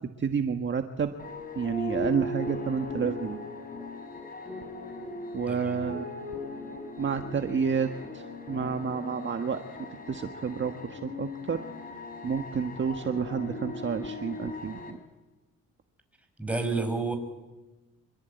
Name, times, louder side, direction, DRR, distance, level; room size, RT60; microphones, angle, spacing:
voice 1, 0.2-1.1 1.5-3.4 5.3-6.1 7.0-9.6 10.1-11.6 12.2-15.0, right 6 dB, 40° right, 6 dB, 1.6 m, -30 dB
sound 1, 1.2-14.9, left 2 dB, 30° left, 6.4 m, -39 dB
voice 2, 5.5-5.9 16.4-17.2, right 3 dB, 5° right, 6 dB, 6.3 m, -30 dB
26.5 x 23.0 x 9.3 m, 1.1 s
cardioid pair, 90°, 30 cm